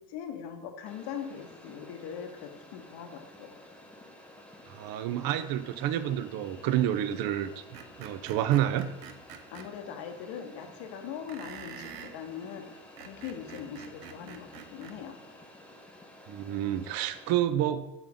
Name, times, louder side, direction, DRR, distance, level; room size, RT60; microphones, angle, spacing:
voice 1, 0.0-3.6 9.5-15.3, left 8 dB, 60° left, 5 dB, 0.9 m, -41 dB
sound 1, 0.9-17.4, left 1 dB, 5° left, 0.6 m, -52 dB
voice 2, 4.7-7.5 8.0-8.9 16.3-18.0, right 11 dB, 50° right, 13 dB, 0.5 m, -29 dB
Screech, 7.7-9.7 11.3-12.2 12.8-15.0, right 8 dB, 90° right, 0.7 m, -46 dB
7.2 x 3.8 x 3.5 m, 1.0 s
supercardioid pair, 100°, 46 cm